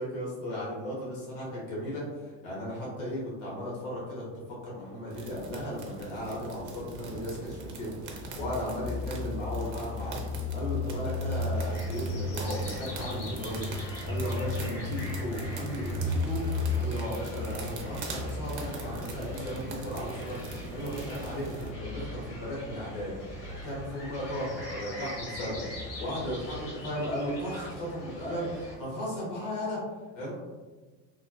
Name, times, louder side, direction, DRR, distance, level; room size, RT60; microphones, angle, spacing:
voice 1, 0.0-7.9 8.3-10.2 10.5-13.7 14.0-23.1 23.6-29.8 30.1-30.3, equal, 80° left, -6 dB, 1.3 m, -36 dB
sound 1, 5.1-21.7, right 2 dB, 50° right, 0.7 m, -41 dB
sound 2, 8.4-26.7, left 3 dB, 15° right, 0.8 m, -36 dB
sound 3, 11.5-28.8, left 1 dB, 50° left, 1.5 m, -44 dB
3.2 x 2.3 x 2.3 m, 1.3 s
hypercardioid pair, 85°, 40 cm